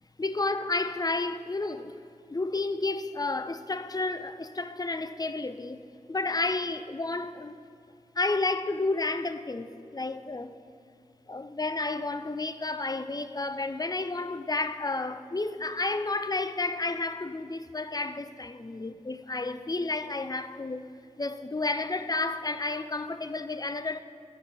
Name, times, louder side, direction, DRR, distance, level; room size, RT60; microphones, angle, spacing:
voice 1, 0.2-1.9 2.3-5.8 6.1-7.6 8.2-10.5 11.3-20.8 21.2-24.0, left 3 dB, 30° left, 0.4 m, -31 dB
13.0 x 7.9 x 3.5 m
wide cardioid pair, 45°, 13 cm